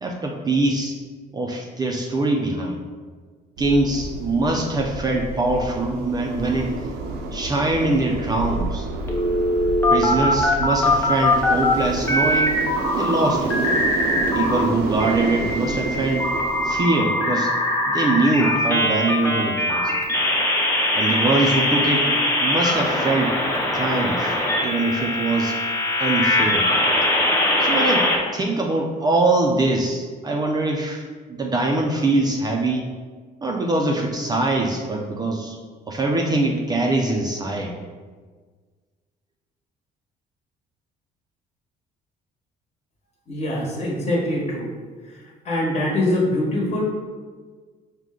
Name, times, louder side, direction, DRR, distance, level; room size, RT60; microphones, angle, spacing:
voice 1, 0.0-0.9 1.3-2.8 3.6-6.8 7.3-8.9 9.9-12.6 13.0-13.6 14.3-16.3 16.6-17.5 17.9-19.9 20.9-23.4 23.7-25.6 26.0-26.7 27.6-32.9 33.4-35.6 35.9-37.7, right 2 dB, 25° right, 0 dB, 0.4 m, -23 dB
sound 1, 3.6-16.8, right 3 dB, 70° right, 0.6 m, -29 dB
sound 2, 9.1-11.7 12.0-14.6 15.0-28.2, left 1 dB, 15° left, 0.6 m, -21 dB
voice 2, 43.3-44.7 45.1-45.2 45.4-46.8, left 1 dB, 40° left, -3 dB, 1.2 m, -23 dB
4.8 x 2.2 x 3.6 m, 1.5 s
cardioid pair, 110°, 17 cm